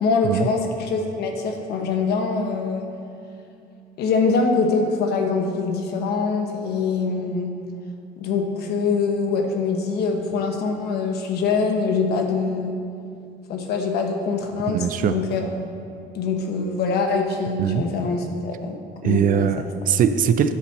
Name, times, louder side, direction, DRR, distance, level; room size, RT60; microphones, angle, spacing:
voice 1, 0.0-2.8 4.0-7.5 8.2-12.7 13.5-15.5 16.1-18.8 19.0-19.5, left 4 dB, 75° left, 3 dB, 1.1 m, -24 dB
voice 2, 14.7-15.1 17.6-17.8 19.0-20.5, right 8 dB, 55° right, 11 dB, 0.5 m, -21 dB
9.9 x 4.4 x 6.5 m, 2.6 s
cardioid pair, 110°, 17 cm